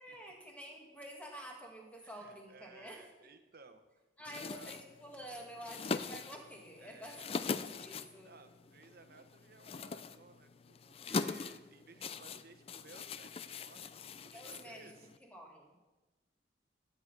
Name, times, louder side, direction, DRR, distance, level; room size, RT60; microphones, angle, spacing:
voice 1, 0.0-3.1 4.2-8.3 14.3-14.9 15.2-15.8, equal, 5° left, 0 dB, 1.9 m, -49 dB
voice 2, 2.0-3.8 4.3-4.7 6.8-7.3 8.2-15.1, right 3 dB, 55° right, 8 dB, 1.0 m, -58 dB
sound 1, 4.3-15.2, left 4 dB, 30° left, 0.4 m, -42 dB
13.0 x 8.3 x 5.3 m, 1.1 s
head